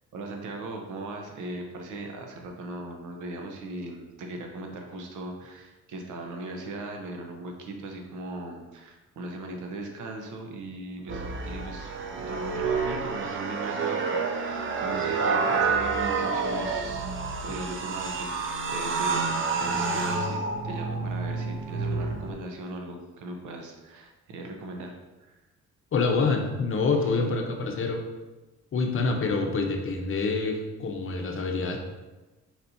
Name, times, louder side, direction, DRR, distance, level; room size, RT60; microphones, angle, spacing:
voice 1, 0.1-11.9 12.2-19.3 19.5-20.4 20.6-25.3 27.0-27.2, right 2 dB, 80° right, 2 dB, 0.8 m, -39 dB
sound 1, 11.1-22.3, right 4 dB, 40° right, 0.6 m, -29 dB
voice 2, 25.9-28.0 28.7-31.8, left 4 dB, 45° left, 3 dB, 0.7 m, -26 dB
4.2 x 4.2 x 2.7 m, 1.1 s
cardioid pair, 90°, 30 cm